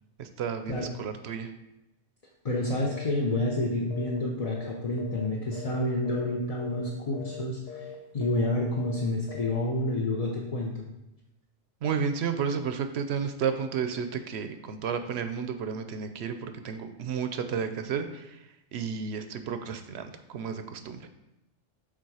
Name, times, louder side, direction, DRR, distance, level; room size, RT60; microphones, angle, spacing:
voice 1, 0.2-1.5 11.8-20.0 20.3-21.1, right 6 dB, 65° right, 8 dB, 0.8 m, -32 dB
voice 2, 2.4-7.9 8.1-10.9, left 2 dB, 40° left, -2 dB, 0.6 m, -29 dB
sound 1, 2.8-3.1 3.4-3.6 3.9-5.3 5.5-5.8 6.1-6.3 6.6-6.9 7.1-7.4 7.7-8.0 8.2-8.5 8.7-9.0 9.3-9.6, left 8 dB, 55° left, 1.1 m, -42 dB
7.7 x 3.5 x 4.8 m, 0.94 s
omnidirectional pair, 1.3 m